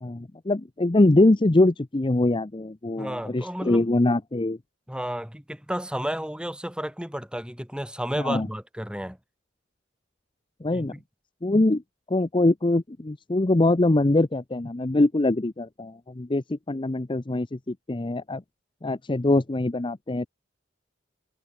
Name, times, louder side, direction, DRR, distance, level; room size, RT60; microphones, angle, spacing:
voice 1, 0.0-4.6 8.2-8.5 10.6-10.9 11.4-11.8 12.1-18.4 18.8-20.3, left 2 dB, 25° left, 0.7 m, -23 dB
voice 2, 3.0-3.9 4.9-9.2 10.7-11.0, equal, 5° right, 7.3 m, -32 dB
head